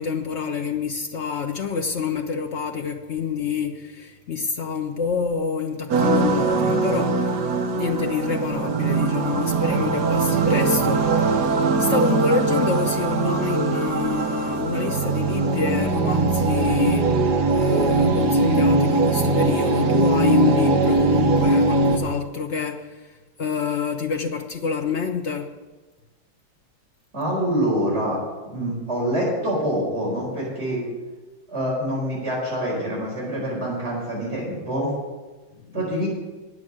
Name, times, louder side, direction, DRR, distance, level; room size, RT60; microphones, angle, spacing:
voice 1, 0.0-7.2 7.7-11.1 11.4-17.2 17.5-25.5 35.7-36.1, left 6 dB, 80° left, 0.6 m, -27 dB
sound 1, 5.9-22.0, right 3 dB, 60° right, 1.7 m, -21 dB
voice 2, 27.1-30.9 31.5-34.9 35.7-36.1, equal, 30° right, 4.9 m, -26 dB
9.7 x 8.1 x 8.9 m
omnidirectional pair, 2.1 m